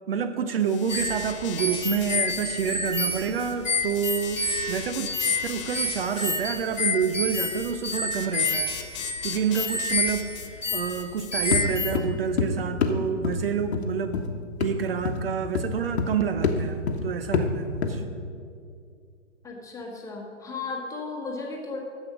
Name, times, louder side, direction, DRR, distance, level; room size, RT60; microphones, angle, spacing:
voice 1, 0.1-10.3 10.7-14.2 14.6-18.0, right 7 dB, 50° right, 10 dB, 0.5 m, -28 dB
sound 1, 0.6-11.6, left 10 dB, 25° left, 0.5 m, -41 dB
sound 2, 0.9-12.0, left 2 dB, 85° left, 1.3 m, -29 dB
sound 3, 11.5-11.7 12.0-12.5 12.8-13.0 13.2-13.4 13.7-13.9 14.1-14.3 14.6-14.8 15.1-15.2 15.6-16.2 16.4-16.6 16.9-17.0 17.3-17.5 17.8-18.0, left 5 dB, 60° left, 1.1 m, -25 dB
voice 2, 19.4-21.8, left 3 dB, 10° left, 0 dB, 1.2 m, -35 dB
10.5 x 7.2 x 6.0 m, 2.4 s
figure-of-eight pair, 120°, 37 cm